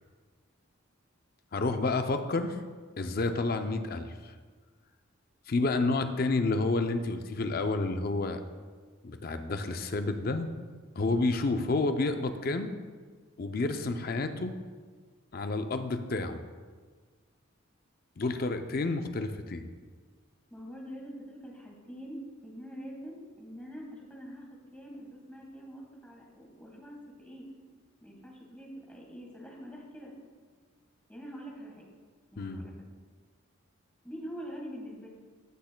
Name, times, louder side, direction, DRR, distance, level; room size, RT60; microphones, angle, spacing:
voice 1, 1.5-2.6 3.0-4.3 5.5-8.4 9.0-10.5 11.0-12.7 13.4-14.5 15.3-16.4 18.2-19.7 32.4-32.7, left 3 dB, 45° left, 7 dB, 0.5 m, -30 dB
voice 2, 20.5-24.5 24.7-27.5 28.0-30.1 31.1-31.8 32.3-32.7 34.0-35.1, equal, 5° left, -3 dB, 1.4 m, -44 dB
13.5 x 6.3 x 2.2 m, 1.5 s
head